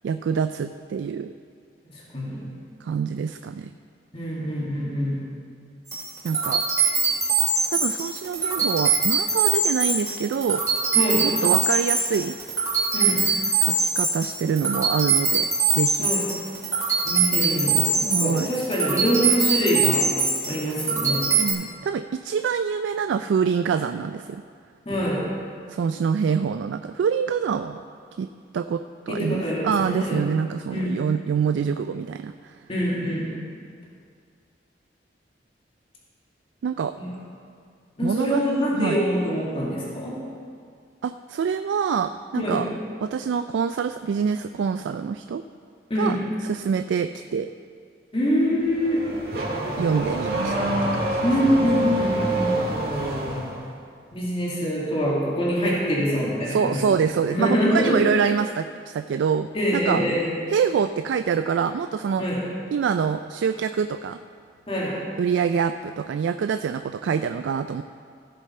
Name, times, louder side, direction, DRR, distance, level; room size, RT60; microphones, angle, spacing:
voice 1, 0.0-1.3 2.8-3.7 6.2-6.6 7.7-10.6 11.2-12.3 13.6-16.1 18.1-18.5 21.4-24.4 25.7-27.8 28.2-28.3 28.5-32.5 36.6-36.9 38.0-38.4 38.7-39.0 41.0-42.7 43.0-45.4 46.0-46.2 46.4-47.5 49.8-51.0 56.5-58.7 58.9-60.0 60.5-62.2 62.7-64.2 65.2-67.8, right 6 dB, 85° right, 9 dB, 0.3 m, -25 dB
voice 2, 1.9-2.4 4.1-5.2 10.9-11.3 12.9-13.2 16.0-16.2 17.1-20.1 20.5-21.2 24.9-25.2 29.1-30.2 30.7-30.9 32.7-33.3 37.0-37.1 38.0-40.2 42.4-42.6 45.9-46.2 48.1-49.2 51.2-52.5 54.1-56.8 57.0-58.0 59.5-60.3 62.2-62.4 64.7-65.0, equal, 30° left, -5 dB, 2.0 m, -24 dB
sound 1, 5.9-21.5, right 5 dB, 15° right, 3.1 m, -23 dB
Car / Accelerating revving vroom, 48.6-53.6, right 1 dB, 55° right, 1.8 m, -26 dB
15.5 x 6.6 x 4.3 m, 2.2 s
head